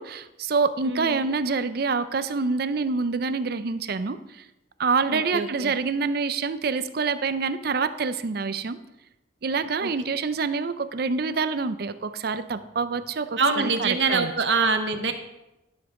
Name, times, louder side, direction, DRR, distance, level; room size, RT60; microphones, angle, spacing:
voice 1, 0.0-4.4 4.8-8.8 9.4-14.3, right 4 dB, 55° right, 12 dB, 0.5 m, -26 dB
voice 2, 0.8-1.3 5.1-5.7 9.8-9.9 13.4-15.1, right 4 dB, 70° right, 6 dB, 1.0 m, -25 dB
12.5 x 7.2 x 3.7 m, 0.95 s
head